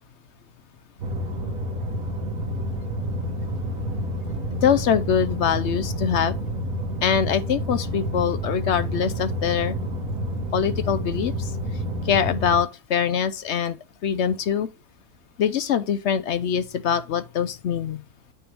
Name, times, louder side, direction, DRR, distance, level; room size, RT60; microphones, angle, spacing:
sound 1, 1.0-12.6, equal, 75° right, 1.6 m, -29 dB
voice 1, 4.6-6.3 7.0-9.8 10.5-11.5 12.0-13.8 14.0-14.7 15.4-18.0, left 8 dB, 65° left, 0.7 m, -23 dB
9.1 x 4.6 x 3.3 m
omnidirectional pair, 1.6 m